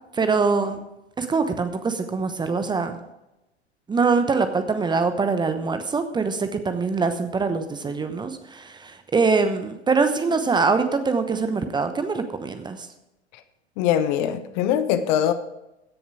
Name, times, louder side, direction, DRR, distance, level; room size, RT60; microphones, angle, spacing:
voice 1, 0.1-0.8 1.2-3.0 3.9-12.9, right 4 dB, 15° right, 9 dB, 0.9 m, -23 dB
voice 2, 13.8-15.3, left 10 dB, 45° left, 11 dB, 1.1 m, -22 dB
16.0 x 7.1 x 4.8 m, 0.94 s
figure-of-eight pair, 90°, 33 cm